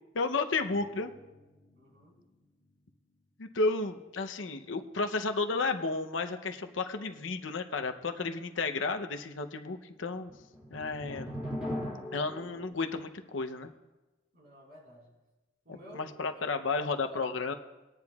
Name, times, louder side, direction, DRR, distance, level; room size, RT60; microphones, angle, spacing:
voice 1, 0.1-1.1 3.4-10.3 10.7-11.4 12.1-13.7 15.9-17.5, left 3 dB, 90° left, 6 dB, 0.7 m, -32 dB
sound 1, 0.6-2.3 2.7-2.8 10.1-12.7, equal, 5° right, 2.8 m, -41 dB
voice 2, 1.7-2.3 14.3-15.1 15.6-17.2, equal, 55° right, -4 dB, 4.4 m, -53 dB
20.0 x 9.7 x 2.4 m, 1.1 s
head